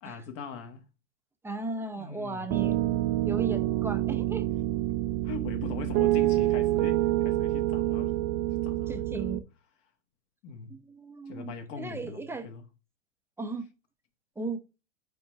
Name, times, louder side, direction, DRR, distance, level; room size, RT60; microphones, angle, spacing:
voice 1, 0.0-0.8 1.9-2.6 5.2-8.2 8.6-9.4 10.4-10.8 11.2-12.6, left 5 dB, 40° left, 1.3 m, -41 dB
voice 2, 1.4-2.8 3.2-4.5 8.9-9.4 10.7-12.5 13.4-13.6 14.4-14.6, right 3 dB, 5° right, 0.7 m, -36 dB
Piano, 2.5-9.4, right 15 dB, 45° right, 0.6 m, -27 dB
5.5 x 4.5 x 6.3 m
hypercardioid pair, 115°, 40 cm